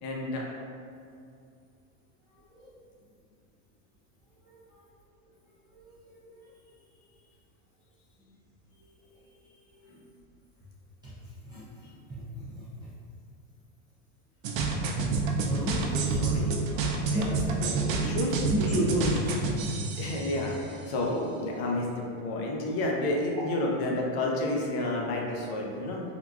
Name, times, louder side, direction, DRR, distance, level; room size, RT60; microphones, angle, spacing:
voice 1, 0.0-0.5 16.0-18.5 20.0-26.0, left 1 dB, 55° left, -1 dB, 0.7 m, -31 dB
voice 2, 12.1-12.5 15.4-15.8 17.1-17.3 18.5-19.4, equal, 10° right, -11 dB, 0.3 m, -29 dB
sound 1, 14.4-20.7, right 3 dB, 80° right, 0.5 m, -29 dB
3.7 x 2.2 x 2.3 m, 2.3 s
supercardioid pair, 135°, 39 cm